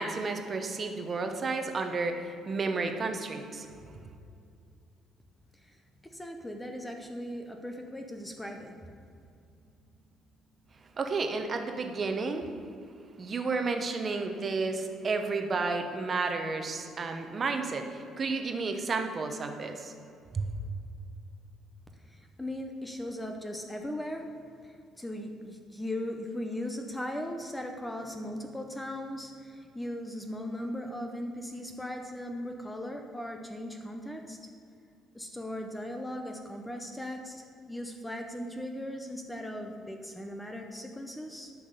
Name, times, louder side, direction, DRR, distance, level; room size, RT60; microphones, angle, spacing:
voice 1, 0.0-3.7 11.0-12.5 13.2-19.9 20.3-20.5, right 4 dB, 30° right, 6 dB, 0.9 m, -32 dB
voice 2, 5.5-8.8 22.0-24.3 24.6-34.4 35.1-41.5, left 1 dB, 5° left, 4 dB, 0.7 m, -38 dB
10.5 x 6.0 x 8.1 m, 2.5 s
cardioid pair, 155°, 0 cm